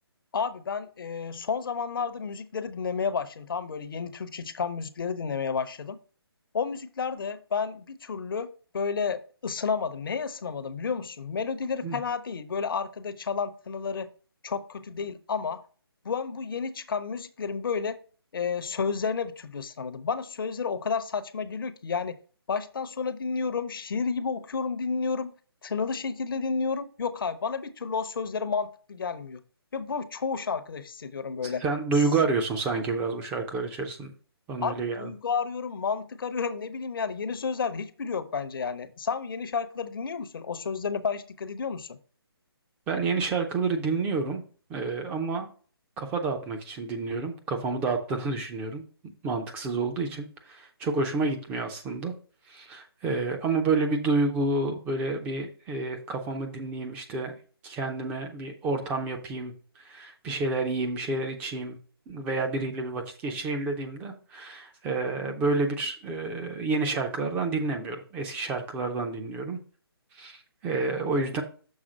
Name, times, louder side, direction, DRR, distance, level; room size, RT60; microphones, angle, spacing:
voice 1, 0.3-6.0 6.5-14.1 14.4-15.6 16.0-18.0 18.3-22.1 22.5-25.3 25.6-29.4 29.7-31.6 34.6-42.0, left 5 dB, 60° left, 0.7 m, -31 dB
voice 2, 31.4-34.1 34.5-35.1 42.9-44.4 44.7-45.5 46.0-48.8 49.2-52.1 52.5-57.3 57.6-61.8 62.1-69.6 70.1-71.4, right 3 dB, 10° right, 0.5 m, -29 dB
6.5 x 3.6 x 6.0 m
figure-of-eight pair, 150°, 13 cm